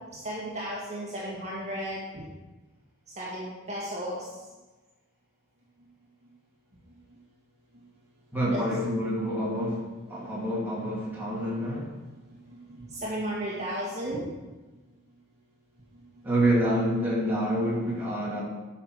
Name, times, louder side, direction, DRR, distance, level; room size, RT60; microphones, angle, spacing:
voice 1, 0.1-2.2 3.1-4.4 8.5-8.7 10.1-10.4 11.2-11.3 12.0-14.3 15.9-16.2, equal, 35° right, -6 dB, 1.8 m, -35 dB
voice 2, 8.3-11.9 16.2-18.4, right 1 dB, 10° right, -7 dB, 2.4 m, -27 dB
9.8 x 5.9 x 4.7 m, 1.2 s
head